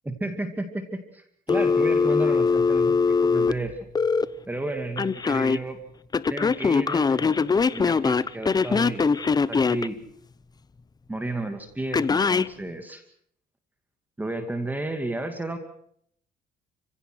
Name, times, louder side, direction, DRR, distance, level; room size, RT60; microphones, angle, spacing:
voice 1, 0.0-3.8 4.5-5.8 6.3-7.4 7.7-9.1 9.5-10.0 11.1-13.0 14.2-15.6, right 2 dB, 10° right, 7 dB, 2.4 m, -32 dB
Telephone, 1.5-4.2 5.0-5.6 6.1-9.9 11.9-12.5, left 5 dB, 25° left, 0.8 m, -22 dB
29.0 x 16.5 x 6.3 m, 0.67 s
cardioid pair, 110°, 17 cm